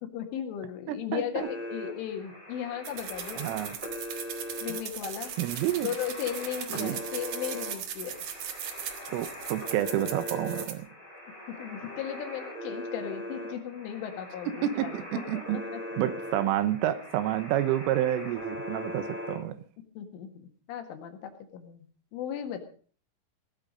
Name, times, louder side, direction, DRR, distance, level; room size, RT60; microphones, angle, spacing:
voice 1, 0.0-3.4 4.6-5.3 5.8-8.2 11.5-15.0 15.5-15.8 20.0-22.6, left 9 dB, 75° left, 6 dB, 4.3 m, -36 dB
voice 2, 0.9-1.5 3.4-3.8 5.4-5.9 6.7-7.0 9.1-10.9 14.5-15.6 16.0-19.6, right 12 dB, 80° right, 13 dB, 3.6 m, -29 dB
sound 1, 1.4-19.4, left 1 dB, 10° right, 5.7 m, -41 dB
sound 2, 2.8-10.7, right 9 dB, 65° right, 2.1 m, -39 dB
17.5 x 12.5 x 5.2 m, 0.44 s
omnidirectional pair, 5.8 m